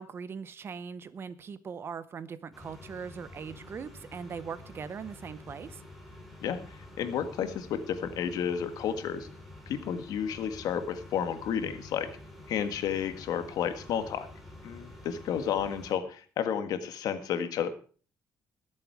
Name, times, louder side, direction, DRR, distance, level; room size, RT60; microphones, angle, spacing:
voice 1, 0.0-5.8, right 6 dB, 40° right, 15 dB, 0.8 m, -40 dB
sound 1, 2.5-16.0, left 2 dB, ahead, 3.1 m, -49 dB
voice 2, 7.0-9.3 9.7-12.1 12.5-14.3 14.6-17.7, left 8 dB, 70° left, 9 dB, 1.6 m, -31 dB
21.5 x 7.5 x 4.7 m, 0.40 s
cardioid pair, 145°, 7 cm